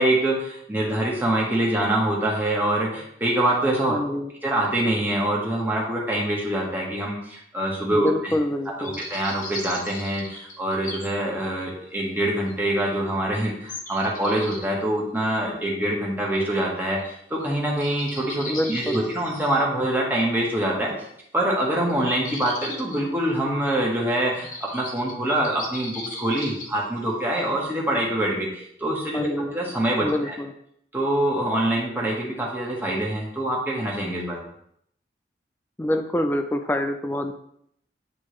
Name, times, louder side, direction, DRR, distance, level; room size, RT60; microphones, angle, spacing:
voice 1, 0.0-3.9 4.4-8.3 8.8-20.9 21.3-30.3 30.9-34.4, right 1 dB, 10° right, -3 dB, 1.5 m, -25 dB
voice 2, 3.9-4.3 7.9-9.0 18.5-19.0 29.1-29.5 30.0-30.5 35.8-37.3, left 1 dB, 10° left, 6 dB, 0.5 m, -26 dB
sound 1, 8.8-11.1 11.6-11.7 12.5-12.6 13.7-14.7 17.0-17.1 17.4-17.5 17.8-19.6 21.9-23.0 23.7-23.8 24.3-26.7, left 2 dB, 45° left, 1.0 m, -37 dB
9.7 x 3.6 x 3.2 m, 0.70 s
head